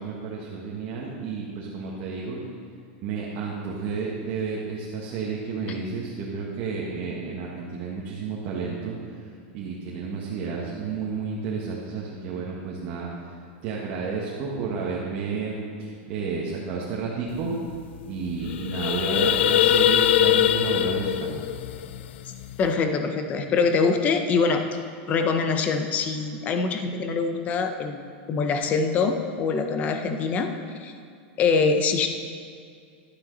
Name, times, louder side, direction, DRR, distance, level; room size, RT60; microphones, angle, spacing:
voice 1, 0.0-2.4 3.0-13.3 13.6-17.6 18.0-21.4, right 5 dB, 35° right, -4 dB, 1.4 m, -31 dB
sound 1, 17.4-17.5 17.7-18.0 18.3-22.7, left 11 dB, 85° left, 0.4 m, -22 dB
voice 2, 22.6-24.6 25.1-28.0 28.3-30.5 30.8-30.9 31.4-32.1, left 4 dB, 25° left, 6 dB, 0.7 m, -24 dB
11.5 x 9.6 x 4.0 m, 2.3 s
supercardioid pair, 165°, 6 cm